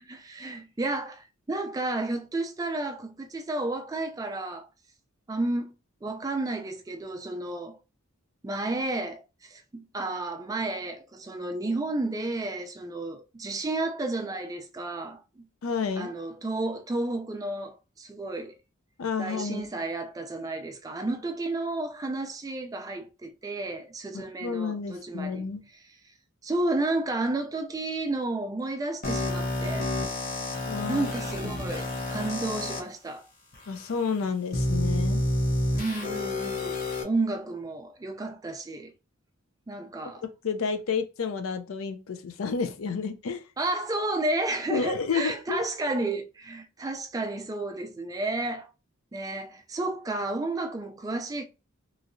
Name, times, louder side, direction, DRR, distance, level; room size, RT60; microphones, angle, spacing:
voice 1, 0.0-4.7 5.3-5.7 6.0-7.8 8.4-15.5 16.0-18.6 19.2-25.5 26.4-29.9 30.9-33.3 35.7-36.8 37.0-38.9 39.7-40.2 43.6-48.7 49.1-51.4, right 2 dB, 15° right, 0.3 m, -32 dB
voice 2, 15.6-16.1 19.0-19.7 24.1-25.6 30.7-31.1 33.7-35.2 40.4-43.4 44.7-45.7, left 5 dB, 85° left, 0.5 m, -30 dB
sound 1, 29.0-32.8 33.5-33.6 34.5-37.0, left 1 dB, 40° left, 0.8 m, -29 dB
3.1 x 2.7 x 2.5 m
head